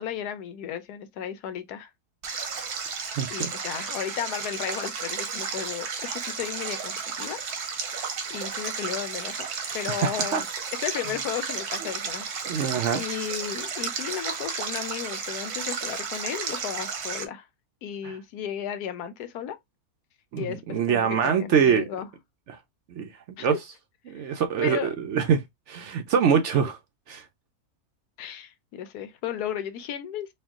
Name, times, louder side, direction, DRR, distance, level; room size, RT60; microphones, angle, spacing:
voice 1, 0.0-1.9 3.3-7.4 8.3-9.3 9.7-10.5 10.8-12.3 12.6-17.5 17.8-19.6 20.4-22.1 23.4-23.6 24.1-24.9 28.2-30.3, left 9 dB, 90° left, 1.2 m, -34 dB
Stream, 2.2-17.2, right 5 dB, 90° right, 1.5 m, -33 dB
voice 2, 3.2-3.5 9.9-10.4 12.5-13.0 18.0-18.2 20.3-21.8 22.5-22.6 22.9-23.6 24.1-25.4 25.7-26.8 27.1-27.2, right 7 dB, 65° right, 0.7 m, -24 dB
4.4 x 2.3 x 3.6 m
omnidirectional pair, 1.6 m